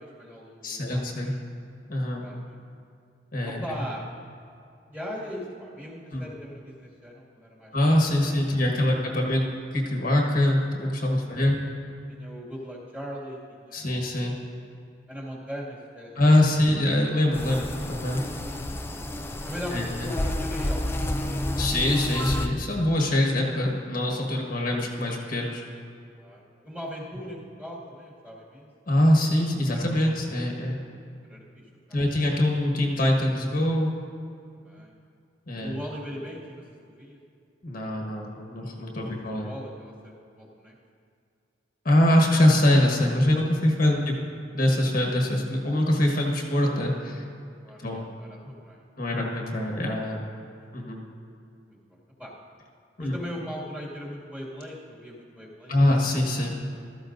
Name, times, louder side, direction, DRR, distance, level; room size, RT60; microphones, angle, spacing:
voice 1, 0.0-1.1 2.2-2.6 3.4-4.1 4.9-7.9 8.2-8.5 12.1-13.9 15.1-16.3 16.7-16.8 19.4-21.8 26.2-28.7 31.3-31.6 31.9-32.1 34.5-34.9 35.6-37.2 39.0-40.7 43.8-44.0 47.6-48.4 48.6-48.8 50.8-50.9 51.7-52.3 53.0-55.7, equal, 10° right, -6 dB, 2.1 m, -40 dB
voice 2, 0.6-1.3 1.9-2.2 3.3-3.6 6.1-6.3 7.7-9.4 9.7-11.6 13.7-14.3 16.1-17.6 17.9-18.2 19.7-20.1 21.6-25.6 28.9-30.8 31.9-33.9 35.5-35.7 37.6-39.5 41.8-44.1 44.5-47.2 47.8-48.0 49.0-50.2 50.7-51.0 53.0-53.2 55.7-56.5, left 1 dB, 50° left, -1 dB, 1.4 m, -23 dB
sound 1, 17.3-22.5, left 1 dB, 15° left, 0.5 m, -30 dB
15.5 x 13.5 x 2.6 m, 2.4 s
head